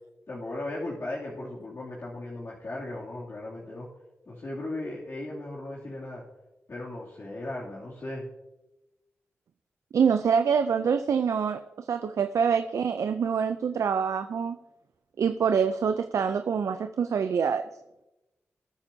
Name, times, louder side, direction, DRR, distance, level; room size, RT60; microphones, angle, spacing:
voice 1, 0.3-3.9 4.3-6.2 6.7-8.2, left 2 dB, 55° left, -7 dB, 2.7 m, -37 dB
voice 2, 9.9-14.6 15.2-17.7, right 6 dB, 80° right, 9 dB, 0.5 m, -25 dB
20.5 x 9.0 x 2.8 m, 0.97 s
cardioid pair, 50°, 5 cm